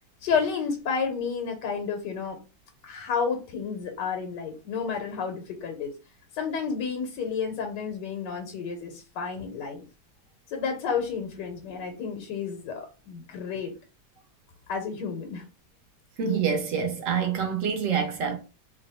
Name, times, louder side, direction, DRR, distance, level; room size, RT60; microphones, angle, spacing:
voice 1, 0.2-2.4 2.8-5.9 6.3-9.8 10.5-13.7 14.7-15.4, left 6 dB, 90° left, 1.3 m, -31 dB
voice 2, 16.2-18.4, right 6 dB, 65° right, 0.9 m, -26 dB
2.9 x 2.1 x 4.0 m
omnidirectional pair, 1.8 m